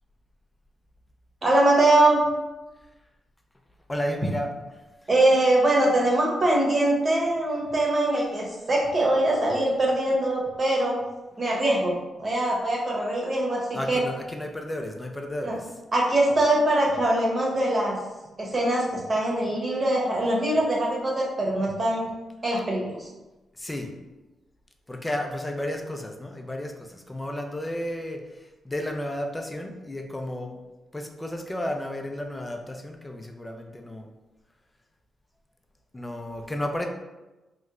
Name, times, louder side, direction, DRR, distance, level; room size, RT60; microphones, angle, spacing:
voice 1, 1.4-2.2 5.1-11.0 11.4-11.9 12.2-14.0 15.4-15.6 15.9-18.0 18.4-22.1 22.4-23.1, right 1 dB, 35° right, -3 dB, 1.0 m, -22 dB
voice 2, 3.9-4.5 13.7-15.6 23.6-23.9 24.9-28.2 28.6-30.5 30.9-34.1 35.9-36.9, left 1 dB, 15° left, 4 dB, 0.5 m, -32 dB
3.0 x 2.1 x 3.6 m, 1.1 s
cardioid pair, 70°, 0 cm